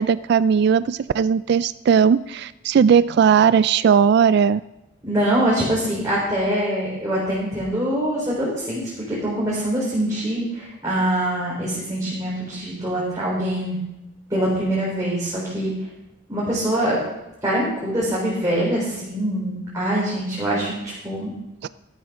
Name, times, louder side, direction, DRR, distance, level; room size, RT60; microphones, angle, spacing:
voice 1, 0.0-4.6 21.6-21.7, right 7 dB, 60° right, 16 dB, 0.3 m, -17 dB
voice 2, 5.0-13.8 14.3-15.7 16.3-17.0 17.4-21.3, right 1 dB, 20° right, -7 dB, 4.0 m, -24 dB
13.5 x 12.5 x 3.7 m, 0.93 s
head